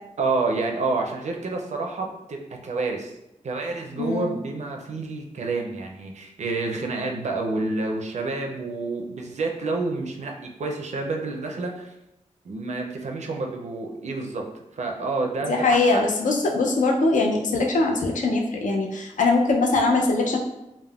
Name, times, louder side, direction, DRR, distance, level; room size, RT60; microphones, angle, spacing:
voice 1, 0.2-2.4 2.6-3.1 3.4-10.3 10.6-11.9 12.4-14.5 14.8-16.0, right 3 dB, 60° right, 1 dB, 0.4 m, -28 dB
voice 2, 4.0-4.4 15.5-20.4, left 3 dB, 75° left, 1 dB, 0.4 m, -22 dB
3.4 x 2.1 x 2.3 m, 0.88 s
wide cardioid pair, 125°, 13 cm